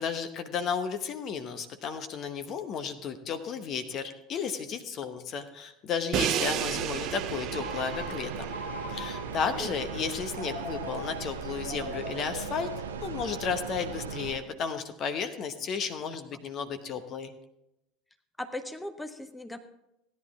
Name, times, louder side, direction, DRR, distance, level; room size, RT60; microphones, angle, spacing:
voice 1, 0.0-8.5 8.9-12.7 13.0-17.3, left 6 dB, 40° left, 8 dB, 0.9 m, -33 dB
Crash cymbal, 6.1-12.1, right 12 dB, 45° right, 0.5 m, -35 dB
voice 2, 6.3-6.7 9.6-9.8 18.4-19.7, left 1 dB, 5° left, 8 dB, 0.9 m, -39 dB
sound 1, 6.4-14.4, right 6 dB, 75° right, 0.7 m, -38 dB
Telephone, 7.5-9.5 10.3-13.4, left 1 dB, 85° left, 1.6 m, -42 dB
16.0 x 10.5 x 3.6 m, 0.87 s
figure-of-eight pair, 70°, 0 cm